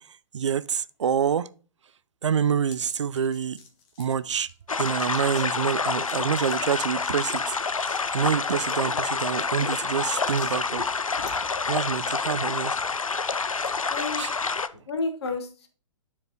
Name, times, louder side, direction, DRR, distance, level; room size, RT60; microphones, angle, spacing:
voice 1, 0.3-1.5 2.2-3.6 4.0-4.5 4.8-10.8 11.2-11.4 11.7-12.8 14.2-14.3, right 7 dB, 60° right, 0.4 m, -27 dB
sound 1, 2.7-4.5 4.8-10.6, left 5 dB, 25° left, 1.3 m, -49 dB
sound 2, 4.7-14.7, left 4 dB, 80° left, 0.4 m, -28 dB
voice 2, 10.8-11.5 13.9-14.3 14.9-15.7, left 3 dB, 50° left, 1.3 m, -32 dB
10.5 x 4.7 x 2.9 m
figure-of-eight pair, 120°, 17 cm